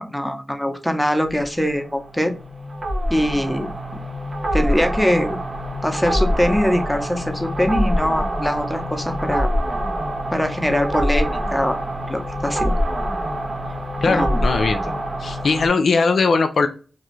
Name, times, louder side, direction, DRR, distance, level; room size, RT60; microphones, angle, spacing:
voice 1, 0.0-2.3 3.1-3.7 4.5-5.4 5.8-9.5 10.3-11.8 12.1-12.7 14.1-14.4, equal, 5° left, 5 dB, 0.7 m, -22 dB
sound 1, 1.2-15.7, equal, 60° right, 0.9 m, -25 dB
voice 2, 14.0-14.9 15.2-16.7, left 4 dB, 75° left, 7 dB, 0.3 m, -19 dB
2.6 x 2.3 x 3.0 m, 0.36 s
cardioid pair, 50°, 0 cm